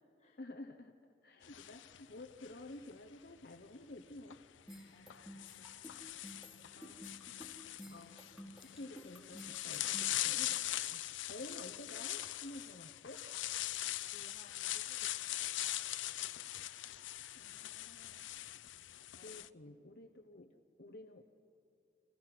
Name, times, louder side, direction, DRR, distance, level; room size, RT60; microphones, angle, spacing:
voice 1, 0.4-0.9 1.2-4.4 6.7-7.1 7.9-10.6 10.9-13.2 17.3-18.2 19.2-20.5 20.8-21.2, left 2 dB, 55° left, 5 dB, 1.1 m, -51 dB
sound 1, 1.4-2.9 4.2-4.3 5.1-19.5, left 14 dB, 90° left, 0.5 m, -41 dB
sound 2, 4.7-10.9, equal, ahead, 2.8 m, -53 dB
voice 2, 4.9-7.1 7.9-8.0 14.0-15.9 19.1-19.5 20.3-20.6, left 2 dB, 35° left, 2 dB, 2.1 m, -66 dB
30.0 x 26.5 x 6.1 m, 2.5 s
head